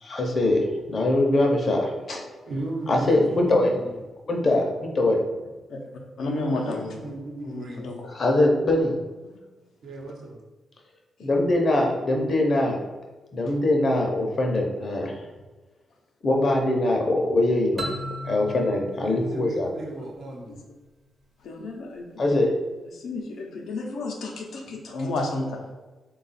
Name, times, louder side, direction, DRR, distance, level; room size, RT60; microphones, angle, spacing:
voice 1, 0.0-2.2 2.9-3.8 4.3-5.2 8.1-9.0 11.2-12.8 13.3-15.3 16.2-17.9 18.2-19.7 22.2-22.5, left 1 dB, 45° left, 1 dB, 0.6 m, -22 dB
voice 2, 2.5-4.0 6.2-7.9 9.8-10.4 18.9-20.6, right 2 dB, 85° right, -2 dB, 0.9 m, -36 dB
voice 3, 6.2-7.0 7.4-8.0 9.2-9.4 20.5-20.6 21.4-22.4 22.9-25.6, left 2 dB, 90° left, 1 dB, 0.6 m, -32 dB
sound 1, 17.8-20.5, equal, 30° right, 0.6 m, -37 dB
3.5 x 2.4 x 4.1 m, 1.2 s
cardioid pair, 120°, 0 cm